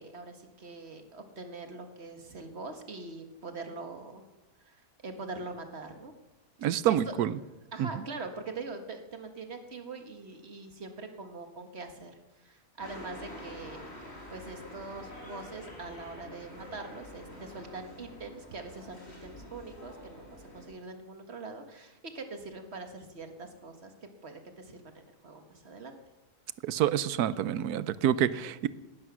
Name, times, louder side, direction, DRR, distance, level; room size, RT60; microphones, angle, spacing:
voice 1, 0.0-4.3 4.7-6.1 6.6-7.1 7.7-13.8 14.3-23.9 24.2-26.0, right 3 dB, 45° right, 6 dB, 1.8 m, -43 dB
voice 2, 6.6-7.3 7.8-7.9 26.6-28.7, right 10 dB, 75° right, 16 dB, 1.2 m, -27 dB
sound 1, 12.8-20.6, left 1 dB, 40° left, 4.2 m, -47 dB
18.5 x 12.0 x 6.2 m, 1.1 s
omnidirectional pair, 1.6 m